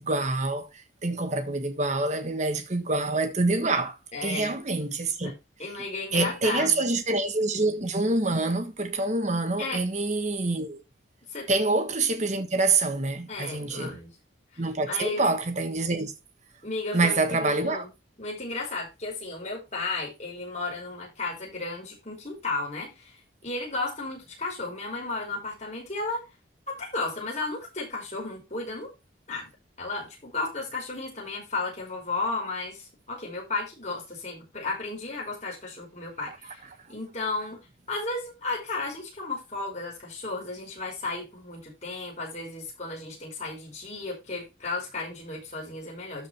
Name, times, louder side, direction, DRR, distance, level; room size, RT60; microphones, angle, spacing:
voice 1, 0.0-5.3 6.1-10.8 11.5-14.0 14.6-16.1 16.9-17.8 36.3-36.4, right 2 dB, 35° right, 1.3 m, -26 dB
voice 2, 4.1-4.5 5.2-5.3 5.6-6.8 9.6-9.8 11.3-11.5 13.3-14.1 14.5-15.2 16.6-17.9 18.2-26.3 26.7-28.9 29.3-29.5 29.8-36.6 36.9-37.6 37.9-46.3, left 3 dB, 35° left, 5.3 m, -34 dB
13.0 x 4.9 x 3.5 m
head